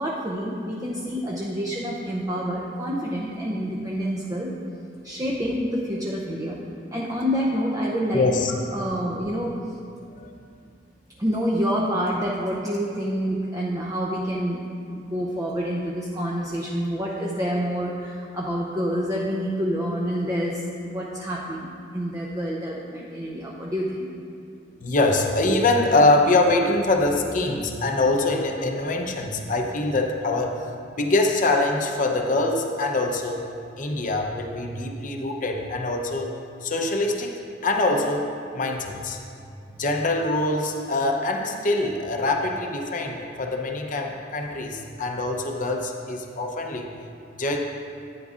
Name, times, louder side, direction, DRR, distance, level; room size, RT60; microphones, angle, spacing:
voice 1, 0.0-4.6 5.0-6.6 6.9-9.8 11.2-14.7 14.9-24.2, equal, 20° right, -4 dB, 0.6 m, -27 dB
voice 2, 8.1-8.5 10.1-10.3 24.8-30.6 30.9-33.4 33.8-36.3 36.6-37.3 37.6-39.2 39.7-46.9 47.4-47.6, left 2 dB, 45° left, 2 dB, 0.8 m, -24 dB
12.0 x 9.5 x 2.5 m, 2.5 s
head